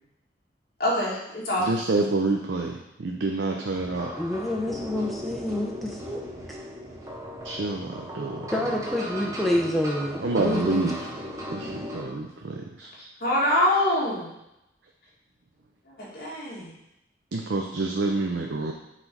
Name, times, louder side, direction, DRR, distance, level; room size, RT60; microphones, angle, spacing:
voice 1, 0.8-1.7 13.2-14.3 15.9-16.7, left 1 dB, 55° left, -6 dB, 2.1 m, -25 dB
voice 2, 1.6-4.1 7.4-8.5 10.2-11.1 11.5-12.9 17.3-18.7, right 3 dB, 85° right, 1 dB, 0.6 m, -28 dB
sound 1, 3.7-12.0, equal, 20° right, 1.0 m, -37 dB
voice 3, 4.2-6.2 8.5-10.9, left 1 dB, ahead, -2 dB, 0.7 m, -28 dB
5.9 x 3.9 x 4.6 m, 0.88 s
head